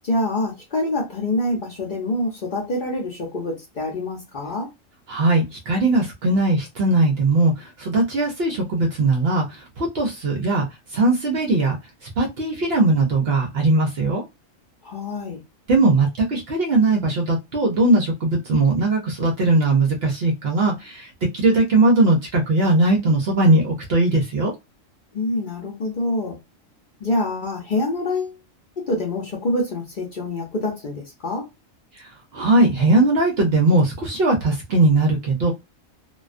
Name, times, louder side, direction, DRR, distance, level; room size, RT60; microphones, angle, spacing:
voice 1, 0.0-4.7 14.8-15.4 25.1-26.4 27.0-28.4 28.8-31.5, left 1 dB, 50° left, 0.7 m, -26 dB
voice 2, 5.1-10.7 10.9-11.8 12.2-14.2 15.7-21.1 21.3-24.5 32.3-35.5, right 2 dB, 60° right, 0.7 m, -19 dB
2.4 x 2.2 x 2.4 m
omnidirectional pair, 1.4 m